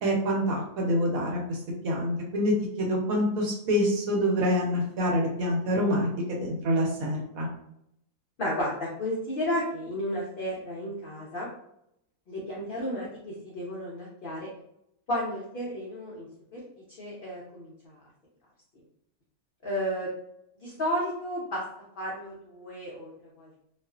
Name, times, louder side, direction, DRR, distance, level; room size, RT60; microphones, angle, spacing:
voice 1, 0.0-7.5, equal, 65° right, -1 dB, 1.1 m, -26 dB
voice 2, 8.4-11.5 12.3-14.5 15.1-16.6 17.0-18.0 19.6-20.1 20.6-21.6 22.0-23.1 23.4-23.6, equal, 75° left, -4 dB, 0.5 m, -32 dB
2.4 x 2.4 x 2.3 m, 0.75 s
omnidirectional pair, 1.6 m